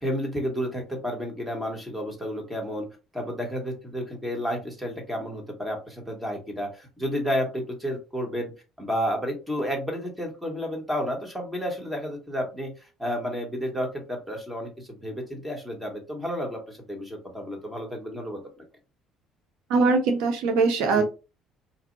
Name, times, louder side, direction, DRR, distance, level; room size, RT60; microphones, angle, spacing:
voice 1, 0.0-2.9 3.1-8.5 8.8-18.6 20.8-21.0, equal, 10° right, 2 dB, 1.4 m, -31 dB
voice 2, 19.7-21.0, right 4 dB, 90° right, 6 dB, 0.6 m, -21 dB
4.1 x 2.6 x 2.6 m, 0.31 s
cardioid pair, 105°, 0 cm